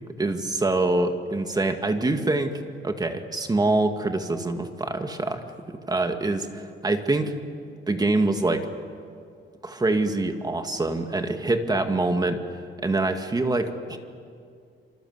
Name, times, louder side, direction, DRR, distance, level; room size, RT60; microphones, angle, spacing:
voice 1, 0.2-6.5 6.8-7.4 7.9-8.7 9.6-12.4 12.8-14.0, right 2 dB, 20° right, 6 dB, 2.0 m, -25 dB
27.0 x 25.5 x 8.0 m, 2.3 s
cardioid pair, 130°, 20 cm